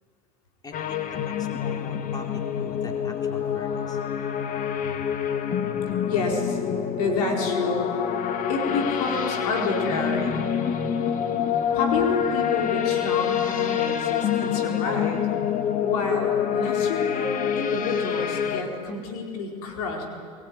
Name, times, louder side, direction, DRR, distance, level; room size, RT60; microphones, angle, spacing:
voice 1, 0.6-4.0, left 2 dB, 20° left, 2 dB, 4.4 m, -42 dB
sound 1, 0.7-18.6, left 8 dB, 45° left, 2.0 m, -26 dB
voice 2, 6.1-6.6 7.0-8.0 8.5-10.4 11.7-15.3 15.8-20.0, left 3 dB, 75° left, 1 dB, 4.6 m, -29 dB
22.5 x 20.5 x 9.5 m, 2.4 s
hypercardioid pair, 90°, 20 cm